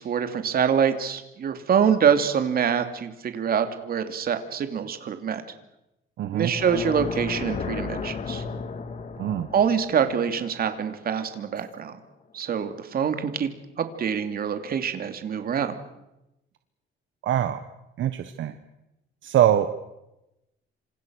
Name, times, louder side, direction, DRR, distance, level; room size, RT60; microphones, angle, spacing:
voice 1, 0.0-5.4 6.3-8.4 9.5-12.0 12.3-13.5 13.8-15.8, right 7 dB, 45° right, 8 dB, 2.8 m, -25 dB
voice 2, 6.2-6.5 9.2-9.5 17.2-17.6 18.0-18.5 19.2-19.7, right 11 dB, 65° right, 9 dB, 1.4 m, -23 dB
sound 1, 6.4-11.5, left 5 dB, 35° left, 2.0 m, -34 dB
27.5 x 26.5 x 6.4 m, 0.92 s
cardioid pair, 155°, 21 cm